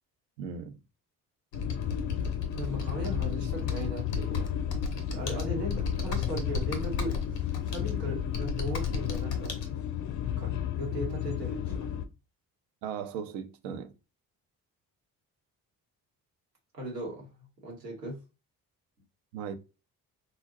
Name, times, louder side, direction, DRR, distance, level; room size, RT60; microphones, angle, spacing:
voice 1, 0.4-0.8 12.8-13.9 19.3-19.6, right 7 dB, 65° right, 0.6 m, -37 dB
Computer keyboard, 1.5-9.7, left 2 dB, 85° left, 0.6 m, -37 dB
sound 1, 1.5-12.1, left 10 dB, 40° left, 0.4 m, -32 dB
voice 2, 2.5-4.5 5.1-9.5 10.3-11.9 16.7-17.3 17.6-18.2, equal, 85° right, 0.9 m, -38 dB
3.8 x 2.1 x 2.5 m
figure-of-eight pair, 40°, 48 cm